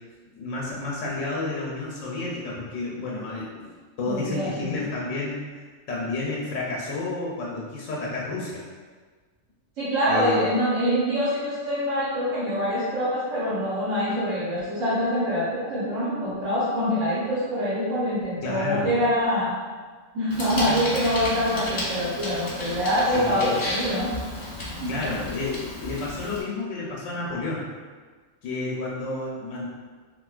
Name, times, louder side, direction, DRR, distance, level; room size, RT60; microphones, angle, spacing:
voice 1, 0.4-3.7 4.0-5.6 5.9-8.6 10.1-10.4 18.4-18.9 23.1-23.6 24.9-27.7 28.4-29.7, left 3 dB, 80° left, -4 dB, 1.0 m, -31 dB
voice 2, 4.0-4.8 9.8-19.5 20.1-24.1 24.8-24.9, equal, 90° right, -10 dB, 1.3 m, -25 dB
Bicycle, 20.3-26.4, left 1 dB, 25° left, 0.5 m, -32 dB
3.6 x 2.6 x 2.3 m, 1.5 s
omnidirectional pair, 1.3 m